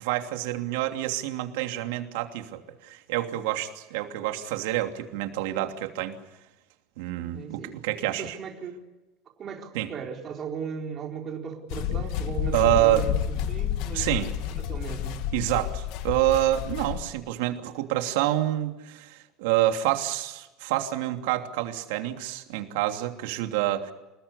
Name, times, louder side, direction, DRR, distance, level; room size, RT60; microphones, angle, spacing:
voice 1, 0.0-6.2 7.0-8.4 9.7-9.9 12.5-13.0 13.9-14.3 15.3-23.9, right 14 dB, 80° right, 5 dB, 3.0 m, -27 dB
voice 2, 7.3-8.8 9.4-14.1 14.5-15.2, right 6 dB, 30° right, 2 dB, 4.5 m, -37 dB
sound 1, 11.7-17.1, left 9 dB, 60° left, 1.8 m, -30 dB
28.0 x 20.0 x 8.4 m, 1.1 s
cardioid pair, 165°, 0 cm